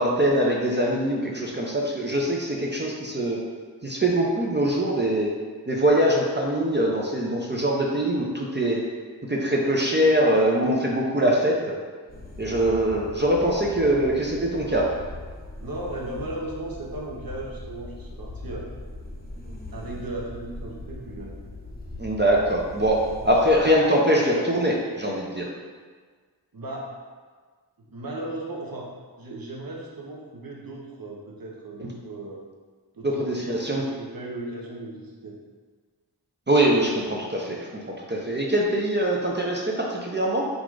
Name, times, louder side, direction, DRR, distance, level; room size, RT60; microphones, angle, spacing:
voice 1, 0.0-3.4 3.8-5.3 5.7-8.8 9.3-11.7 12.4-14.9 22.0-25.5 31.8-31.9 33.0-33.8 36.5-40.4, right 1 dB, 25° right, -2 dB, 0.5 m, -23 dB
sound 1, 12.1-23.7, left 2 dB, 20° left, 0.8 m, -40 dB
voice 2, 15.6-18.7 19.7-21.3 26.5-27.0 27.8-32.4 32.9-35.4, right 2 dB, 55° right, -3 dB, 1.0 m, -36 dB
3.9 x 2.4 x 4.6 m, 1.5 s
wide cardioid pair, 50°, 41 cm